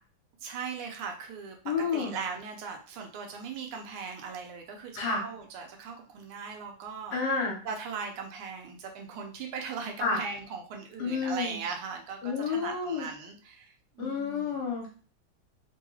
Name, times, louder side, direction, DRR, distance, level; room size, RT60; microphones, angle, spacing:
voice 1, 0.4-7.2 7.6-14.6, right 5 dB, 90° right, 2 dB, 1.6 m, -39 dB
voice 2, 1.6-2.1 5.0-5.2 7.1-7.6 10.0-10.2 11.0-11.5 12.2-13.1 14.0-14.9, left 5 dB, 65° left, -1 dB, 1.5 m, -30 dB
3.8 x 2.3 x 3.0 m, 0.40 s
omnidirectional pair, 2.3 m